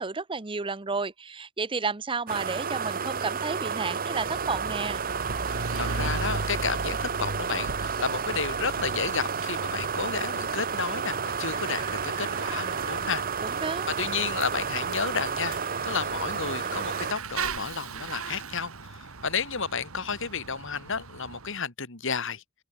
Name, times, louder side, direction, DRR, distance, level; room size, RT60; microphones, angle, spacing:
voice 1, 0.0-5.0 13.4-13.9, right 4 dB, 25° right, 0.9 m, -32 dB
sound 1, 2.3-17.1, right 6 dB, 45° right, 1.3 m, -31 dB
Bicycle / Mechanisms, 4.0-21.6, right 3 dB, 85° right, 2.1 m, -38 dB
voice 2, 5.8-13.6 14.0-22.4, left 5 dB, 65° left, 2.9 m, -32 dB
open air
head